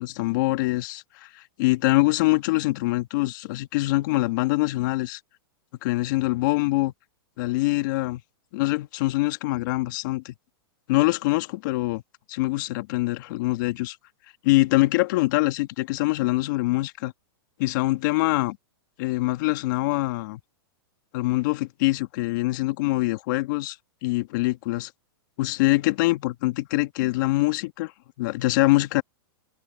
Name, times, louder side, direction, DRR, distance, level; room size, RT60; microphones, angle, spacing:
voice 1, 0.0-5.2 5.8-6.9 7.4-8.2 8.5-10.3 10.9-12.0 12.3-14.0 14.4-17.1 17.6-18.6 19.0-20.4 21.1-23.8 24.0-24.9 25.4-27.9 28.2-29.0, left 20 dB, 50° left, 2.1 m, -24 dB
hypercardioid pair, 145°, 13 cm